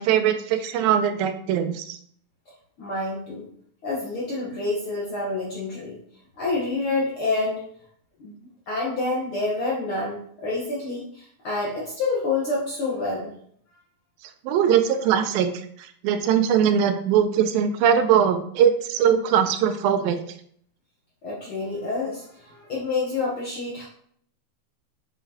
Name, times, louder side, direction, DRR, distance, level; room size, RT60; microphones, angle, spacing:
voice 1, 0.0-2.0 14.5-15.5 16.0-20.2, right 8 dB, 80° right, 8 dB, 2.4 m, -21 dB
voice 2, 2.8-3.5 3.8-6.0 6.4-7.6 8.2-8.3 8.7-13.3 21.2-23.9, left 3 dB, 85° left, -4 dB, 1.1 m, -28 dB
7.4 x 5.7 x 2.9 m, 0.64 s
omnidirectional pair, 4.2 m